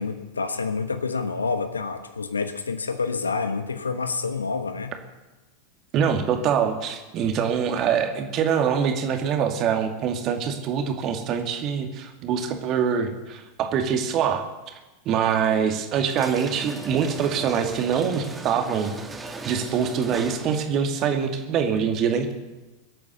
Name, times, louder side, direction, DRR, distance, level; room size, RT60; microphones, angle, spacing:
voice 1, 0.0-5.0, left 4 dB, 75° left, 9 dB, 1.4 m, -28 dB
voice 2, 5.9-14.4 15.1-18.9 19.5-22.3, right 7 dB, 40° right, 5 dB, 2.3 m, -24 dB
sound 1, 16.1-20.9, right 3 dB, 15° right, 2.0 m, -38 dB
22.5 x 8.6 x 6.9 m, 1.1 s
figure-of-eight pair, 85°, 0 cm